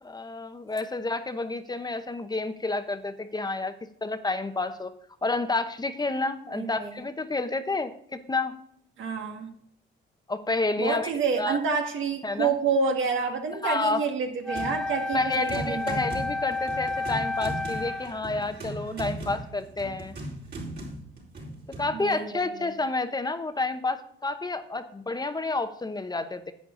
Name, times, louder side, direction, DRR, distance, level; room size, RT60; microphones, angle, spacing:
voice 1, 0.0-3.7 4.0-4.9 5.2-8.5 10.3-11.1 11.4-11.6 12.2-12.5 13.6-14.0 15.1-20.2 21.8-26.5, left 3 dB, 20° left, 9 dB, 0.8 m, -30 dB
voice 2, 6.5-6.9 9.0-9.5 10.8-16.0 18.9-19.2 22.0-22.7, right 5 dB, 75° right, 3 dB, 1.8 m, -29 dB
Wind instrument woodwind instrument, 14.4-18.2, left 2 dB, 5° left, 0.3 m, -31 dB
sound 1, 14.5-14.8 15.1-21.9, right 1 dB, 60° right, 4.4 m, -38 dB
10.5 x 8.5 x 3.8 m, 0.66 s
cardioid pair, 90°, 20 cm